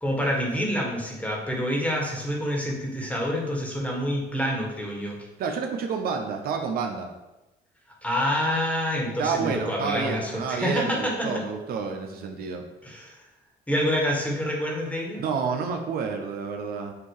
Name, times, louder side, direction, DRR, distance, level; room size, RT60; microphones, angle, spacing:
voice 1, 0.0-5.2 8.0-11.3 12.8-13.2 13.7-15.2, equal, 10° left, -2 dB, 1.7 m, -27 dB
voice 2, 5.4-7.1 9.0-12.6 15.2-16.9, right 5 dB, 60° right, 3 dB, 0.8 m, -29 dB
8.3 x 2.8 x 4.8 m, 1.0 s
cardioid pair, 110°, 17 cm